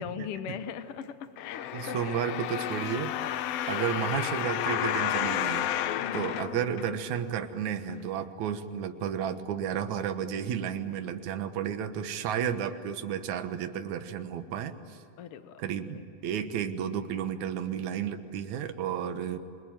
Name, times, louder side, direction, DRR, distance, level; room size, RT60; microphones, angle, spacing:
voice 1, 0.0-2.0 5.9-6.3 15.2-15.6 15.9-16.0, left 8 dB, 65° left, 10 dB, 1.6 m, -39 dB
sound 1, 1.4-7.3 7.9-8.0, left 11 dB, 80° left, 1.4 m, -31 dB
voice 2, 1.7-5.7 6.1-15.0 15.6-19.4, right 8 dB, 65° right, 8 dB, 2.6 m, -32 dB
28.0 x 23.0 x 9.2 m, 2.8 s
omnidirectional pair, 3.7 m